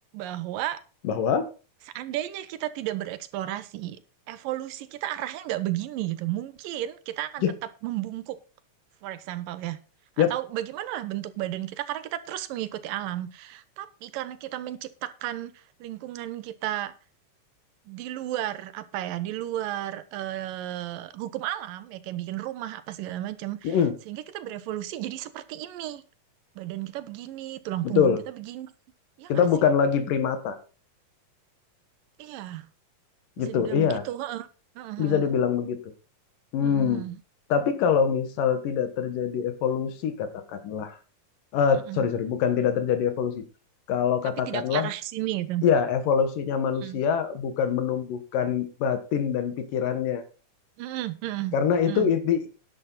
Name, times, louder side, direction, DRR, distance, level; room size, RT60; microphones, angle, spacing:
voice 1, 0.1-0.8 1.9-4.0 4.3-7.5 7.8-8.4 9.0-9.8 10.2-16.9 17.9-23.8 24.1-26.0 26.6-28.7 29.2-29.5 32.2-32.7 33.4-34.5 34.8-35.3 36.6-37.2 41.9-42.1 44.5-45.7 46.8-47.0 50.8-51.6 51.9-52.1, right 14 dB, 85° right, 14 dB, 2.6 m, -33 dB
voice 2, 1.0-1.5 7.4-7.6 10.2-10.3 23.6-23.9 27.8-28.2 29.3-30.6 33.4-34.0 35.0-35.9 36.5-37.0 37.5-40.9 41.5-43.4 43.9-44.9 45.6-50.2 51.5-52.5, left 7 dB, 75° left, 10 dB, 3.2 m, -24 dB
11.0 x 10.5 x 4.1 m, 0.34 s
omnidirectional pair, 3.9 m